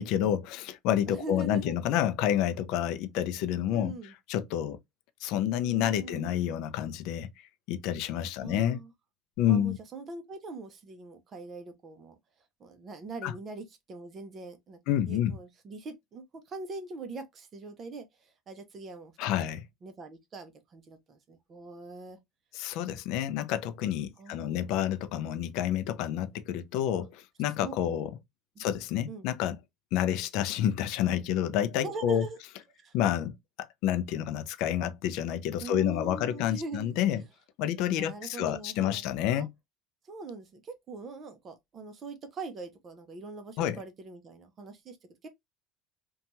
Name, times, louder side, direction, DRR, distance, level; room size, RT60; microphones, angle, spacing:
voice 1, 0.0-3.9 4.3-4.8 5.2-7.3 7.7-8.8 9.4-9.8 13.2-13.3 14.9-15.3 19.2-19.6 22.5-28.1 28.6-29.6 29.9-32.2 32.9-33.4 33.8-37.2 37.6-39.5 43.6-43.8, left 10 dB, 60° left, 0.3 m, -29 dB
voice 2, 1.1-1.7 3.7-4.1 5.6-6.3 8.4-8.9 9.5-12.1 12.6-14.8 15.1-19.4 19.8-22.2 24.2-24.7 27.6-28.0 28.6-28.7 29.1-29.3 31.8-32.4 32.8-33.0 35.6-36.9 37.6-39.0 39.3-39.5 40.0-45.0 45.2-45.3, right 3 dB, 30° right, 0.6 m, -42 dB
2.7 x 2.2 x 2.8 m
cardioid pair, 145°, 0 cm